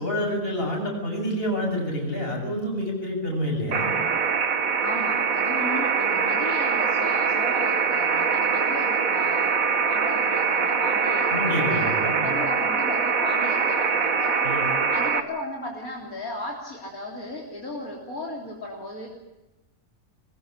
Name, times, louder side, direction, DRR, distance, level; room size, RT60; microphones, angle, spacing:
voice 1, 0.0-4.0 11.3-12.4 14.4-14.7, equal, 40° left, 0 dB, 8.0 m, -28 dB
sound 1, 3.7-15.2, right 5 dB, 70° right, 1.9 m, -23 dB
voice 2, 4.8-9.5 9.9-14.4 14.9-19.1, left 1 dB, 75° left, -1 dB, 3.9 m, -35 dB
22.5 x 20.5 x 8.2 m, 1.0 s
omnidirectional pair, 1.5 m